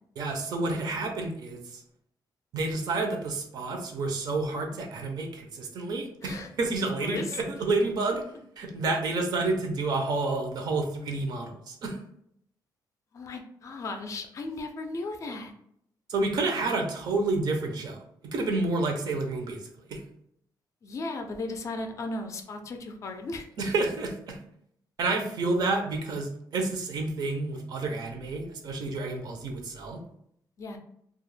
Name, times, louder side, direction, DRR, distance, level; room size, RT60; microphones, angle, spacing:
voice 1, 0.2-1.8 2.5-8.2 8.6-12.0 16.1-19.6 19.9-20.0 23.6-24.4 25.0-30.0, right 3 dB, 60° right, 3 dB, 0.5 m, -29 dB
voice 2, 7.0-7.4 13.1-15.5 20.8-23.5 30.6-30.8, left 2 dB, 45° left, 4 dB, 0.3 m, -36 dB
2.3 x 2.1 x 3.1 m, 0.71 s
cardioid pair, 150°, 8 cm